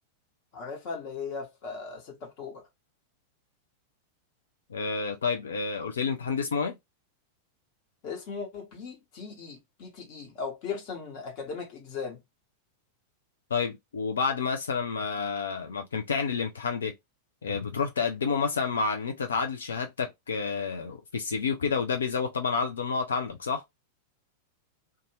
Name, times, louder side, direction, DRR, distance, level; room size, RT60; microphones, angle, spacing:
voice 1, 0.5-2.7 8.0-12.2, left 5 dB, 45° left, 1.2 m, -38 dB
voice 2, 4.7-6.7 13.5-16.9 17.4-23.6, left 5 dB, 70° left, 0.4 m, -29 dB
2.6 x 2.3 x 3.0 m
figure-of-eight pair, 90°, 0 cm